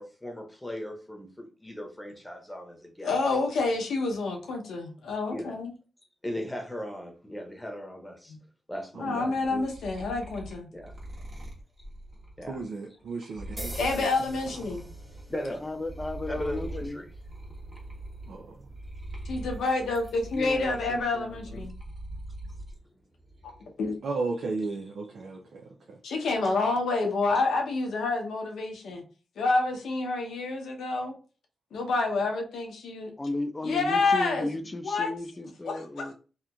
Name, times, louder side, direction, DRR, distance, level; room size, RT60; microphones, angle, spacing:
voice 1, 0.0-3.2 5.3-5.6 6.2-8.3 8.7-9.3 10.7-10.9 12.4-12.6 15.1-15.6 16.3-17.1 25.2-25.7 26.4-26.5, left 1 dB, 10° left, 0.9 m, -38 dB
voice 2, 3.0-5.7 8.3-8.4 9.0-10.7 13.8-14.9 19.2-21.7 23.8-23.9 26.0-29.0 29.4-31.2 31.7-33.1 33.6-34.5 34.8-35.1 35.6-36.1, left 3 dB, 80° left, 0.7 m, -28 dB
voice 3, 8.9-9.7 12.5-14.7 18.3-18.6 24.0-26.0, right 3 dB, 75° right, 0.4 m, -35 dB
sound 1, 9.3-15.4 15.8-22.8 23.2-23.8, right 1 dB, 40° right, 1.1 m, -42 dB
sound 2, 13.6-21.7, right 1 dB, 5° right, 1.4 m, -48 dB
voice 4, 15.6-17.0 20.3-21.7 33.2-36.1, left 2 dB, 25° left, 0.4 m, -34 dB
2.8 x 2.4 x 2.3 m
supercardioid pair, 45°, 0 cm